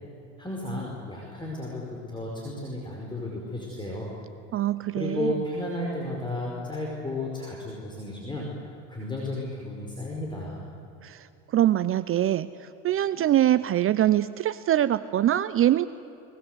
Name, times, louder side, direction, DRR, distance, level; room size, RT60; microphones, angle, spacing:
voice 1, 0.4-4.1 4.9-8.5 8.9-10.6, left 1 dB, 10° left, -2 dB, 5.1 m, -33 dB
voice 2, 4.5-5.3 11.0-11.3 11.5-12.5 12.8-15.9, right 12 dB, 35° right, 15 dB, 0.6 m, -23 dB
23.0 x 21.0 x 8.0 m, 2.7 s
supercardioid pair, 95°, 37 cm